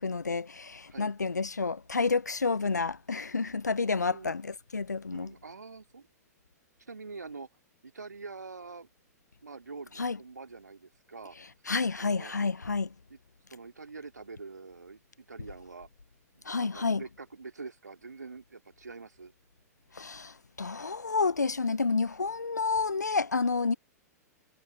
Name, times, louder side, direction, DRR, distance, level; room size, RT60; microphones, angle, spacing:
voice 1, 0.0-5.3 10.0-10.2 11.7-12.9 16.5-17.0 19.9-23.8, left 4 dB, 85° left, 0.6 m, -30 dB
voice 2, 3.9-4.4 5.1-6.1 6.9-7.5 7.8-8.9 9.4-11.4 12.0-12.3 13.1-13.2 13.5-15.9 16.3-19.3, right 4 dB, 80° right, 2.2 m, -45 dB
figure-of-eight pair, 105°, 9 cm